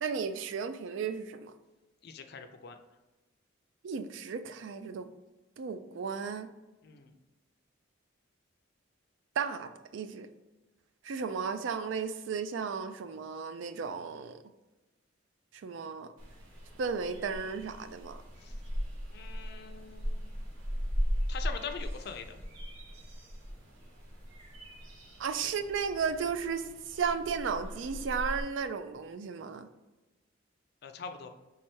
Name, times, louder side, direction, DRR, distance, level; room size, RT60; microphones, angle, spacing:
voice 1, 0.0-1.5 3.8-5.1 5.6-6.5 9.4-10.3 11.0-14.4 15.6-16.1 16.8-18.2 25.2-29.7, right 6 dB, 65° right, 10 dB, 0.3 m, -34 dB
voice 2, 2.0-2.8 6.8-7.1 18.4-18.5 19.1-20.4 21.3-22.4 25.4-25.5 30.8-31.3, left 6 dB, 50° left, 6 dB, 0.4 m, -43 dB
sound 1, 16.2-28.4, equal, 85° right, 1.2 m, -38 dB
3.5 x 3.2 x 4.4 m, 1.1 s
head